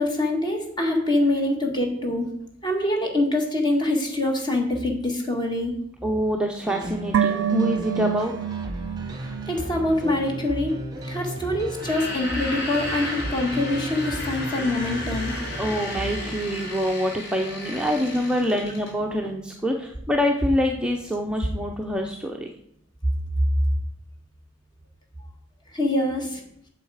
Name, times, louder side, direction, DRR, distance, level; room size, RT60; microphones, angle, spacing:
voice 1, 0.0-2.3 2.6-5.8 9.2-10.8 11.0-15.3 25.7-26.4, left 1 dB, 20° left, 2 dB, 1.6 m, -25 dB
voice 2, 6.0-8.3 15.6-22.5, equal, 5° right, 1 dB, 0.6 m, -25 dB
sound 1, 6.6-16.8, right 1 dB, 20° right, 1.2 m, -35 dB
sound 2, 7.1-10.5 10.7-10.8, right 10 dB, 85° right, 0.4 m, -27 dB
sound 3, 11.7-19.0, left 1 dB, 55° left, 3.0 m, -34 dB
7.9 x 7.2 x 4.8 m, 0.72 s
head